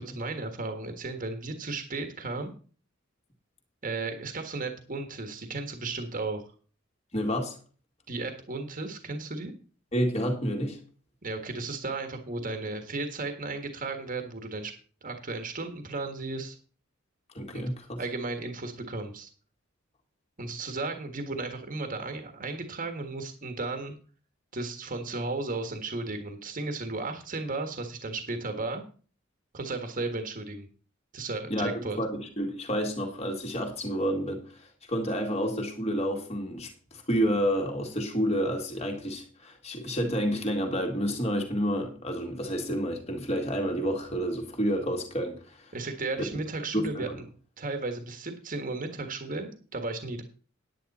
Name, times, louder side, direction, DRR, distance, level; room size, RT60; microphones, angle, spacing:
voice 1, 0.0-2.5 3.8-6.4 8.1-9.5 11.2-14.7 15.0-16.6 17.5-17.6 18.0-19.3 20.4-23.9 24.5-28.8 29.5-30.7 31.1-32.0 45.7-47.1 47.6-50.2, right 3 dB, 40° right, 1.6 m, -34 dB
voice 2, 7.1-7.6 9.9-10.8 17.3-18.0 31.5-45.7 46.7-47.2, equal, 30° left, 2.2 m, -29 dB
9.8 x 9.8 x 4.3 m
head